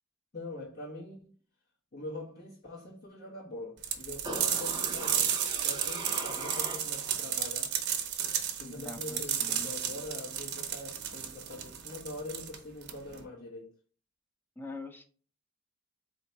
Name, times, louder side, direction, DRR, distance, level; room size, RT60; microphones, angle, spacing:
voice 1, 0.3-1.3 1.9-7.7 8.6-13.7, left 2 dB, 50° left, 1.1 m, -43 dB
sound 1, 3.8-13.2, right 9 dB, 55° right, 0.7 m, -33 dB
sound 2, 4.2-7.2 7.6-7.7, right 3 dB, 20° right, 0.8 m, -40 dB
voice 2, 8.6-9.7 14.6-15.0, left 2 dB, 10° left, 0.5 m, -44 dB
4.1 x 2.8 x 4.4 m
head